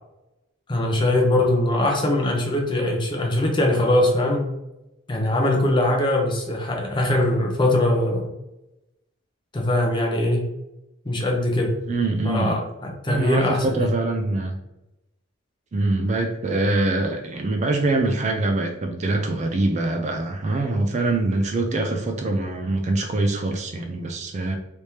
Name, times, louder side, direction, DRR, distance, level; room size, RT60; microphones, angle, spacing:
voice 1, 0.7-4.5 5.1-8.3 9.5-10.5 11.0-11.7 12.2-13.9, left 1 dB, 20° left, 0 dB, 0.6 m, -21 dB
voice 2, 11.9-12.6 13.1-14.5 15.7-24.6, right 2 dB, 35° right, 4 dB, 0.3 m, -24 dB
3.4 x 3.1 x 2.8 m, 0.95 s
head